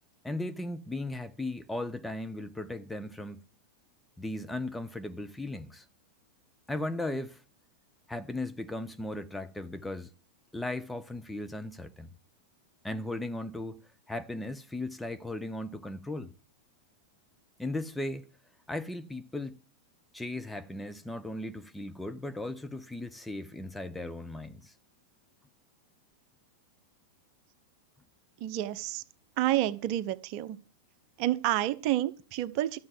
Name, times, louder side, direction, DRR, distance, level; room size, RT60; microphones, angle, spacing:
voice 1, 0.2-3.4 4.2-5.8 6.7-7.4 8.1-10.1 10.5-12.1 12.8-13.8 14.1-16.3 17.6-18.3 18.7-19.6 20.1-24.7, left 2 dB, 5° left, 0.9 m, -37 dB
voice 2, 28.4-29.0 29.4-30.6 31.2-32.8, right 14 dB, 50° right, 1.0 m, -29 dB
12.5 x 7.3 x 7.9 m
hypercardioid pair, 95°, 0 cm